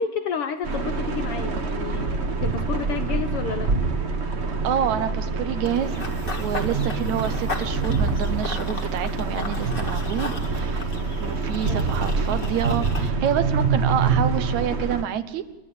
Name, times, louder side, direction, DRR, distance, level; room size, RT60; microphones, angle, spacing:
voice 1, 0.0-2.1 2.4-3.7 11.7-11.8, left 6 dB, 65° left, 8 dB, 1.6 m, -30 dB
sound 1, 0.6-15.0, right 4 dB, 50° right, 0.7 m, -26 dB
voice 2, 4.6-6.0 6.4-10.9 11.2-15.4, right 9 dB, 75° right, 10 dB, 2.4 m, -28 dB
Run / Bird vocalization bird call bird song, 5.6-13.1, left 3 dB, 25° left, 1.5 m, -36 dB
29.5 x 12.0 x 8.6 m, 1.1 s
omnidirectional pair, 3.4 m